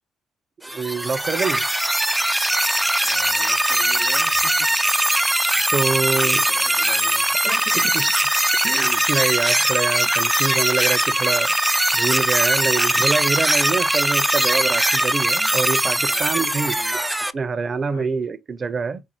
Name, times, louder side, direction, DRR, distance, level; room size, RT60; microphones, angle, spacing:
sound 1, 0.6-17.3, right 1 dB, 10° right, 0.4 m, -20 dB
voice 1, 0.7-1.6 5.7-6.4 7.4-8.1 8.6-11.5 11.9-19.0, right 4 dB, 40° right, 0.7 m, -25 dB
voice 2, 3.0-4.8 6.1-7.2 16.1-17.0 17.9-18.0, left 3 dB, 90° left, 1.6 m, -41 dB
4.4 x 2.0 x 4.3 m
hypercardioid pair, 50°, 0 cm